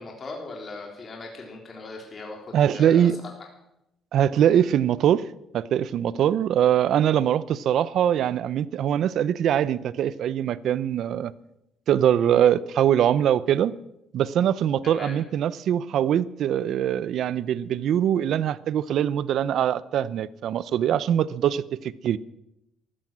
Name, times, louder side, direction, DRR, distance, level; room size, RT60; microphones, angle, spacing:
voice 1, 0.0-3.1 14.8-15.2, left 3 dB, 40° left, 3.6 m, -39 dB
voice 2, 2.5-3.2 4.1-5.2 5.5-11.3 11.9-13.7 14.1-22.2, right 10 dB, 70° right, 0.7 m, -22 dB
14.0 x 14.0 x 7.4 m
cardioid pair, 95°, 0 cm